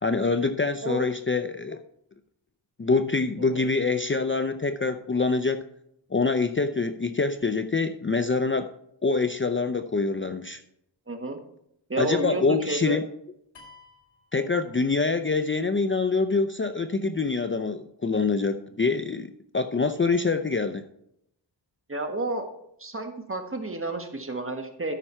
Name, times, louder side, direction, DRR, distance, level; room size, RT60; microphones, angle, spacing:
voice 1, 0.0-1.8 2.8-5.6 6.1-8.7 9.0-10.6 12.0-13.1 14.3-20.8, left 4 dB, 25° left, 9 dB, 0.5 m, -25 dB
voice 2, 11.1-11.4 11.9-13.0 21.9-22.5 22.8-24.9, right 2 dB, 30° right, 5 dB, 1.6 m, -30 dB
sound 1, 13.5-15.2, left 3 dB, 75° left, 2.9 m, -53 dB
13.5 x 5.5 x 4.4 m, 0.75 s
wide cardioid pair, 70°, 45 cm